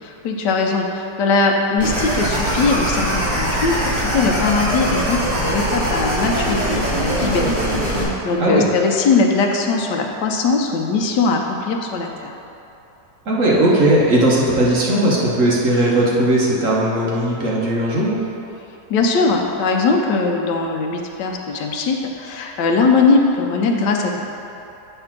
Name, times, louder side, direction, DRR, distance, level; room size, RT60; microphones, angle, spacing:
voice 1, 0.0-12.3 18.9-24.2, left 4 dB, 75° left, 2 dB, 1.2 m, -20 dB
sound 1, 1.8-8.0, equal, 15° right, 1.5 m, -21 dB
voice 2, 13.3-18.1, right 1 dB, 50° right, -5 dB, 1.3 m, -17 dB
7.9 x 3.3 x 5.9 m, 2.9 s
omnidirectional pair, 1.9 m